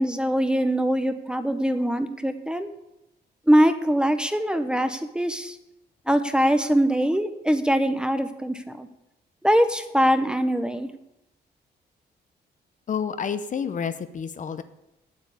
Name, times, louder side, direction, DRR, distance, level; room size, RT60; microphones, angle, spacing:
voice 1, 0.0-2.7 3.5-5.6 6.1-8.9 9.4-10.9, equal, 5° right, 9 dB, 0.7 m, -22 dB
voice 2, 12.9-14.6, left 7 dB, 45° left, 11 dB, 0.7 m, -29 dB
8.8 x 8.2 x 8.3 m, 0.89 s
cardioid pair, 130°, 18 cm